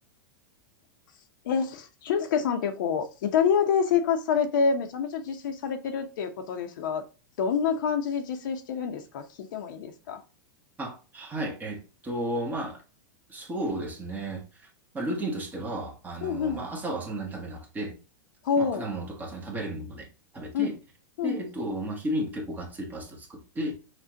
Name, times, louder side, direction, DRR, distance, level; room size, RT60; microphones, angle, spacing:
voice 1, 1.4-7.0 7.4-9.2 9.5-10.2 16.2-16.6 18.4-18.9 20.5-20.7 21.2-21.4, left 6 dB, 70° left, 0.9 m, -27 dB
voice 2, 10.8-12.8 13.3-14.4 14.9-18.0 18.6-20.1 20.3-20.8 21.2-23.7, right 1 dB, 15° right, 1.1 m, -33 dB
5.9 x 2.5 x 2.8 m
supercardioid pair, 140°, 11 cm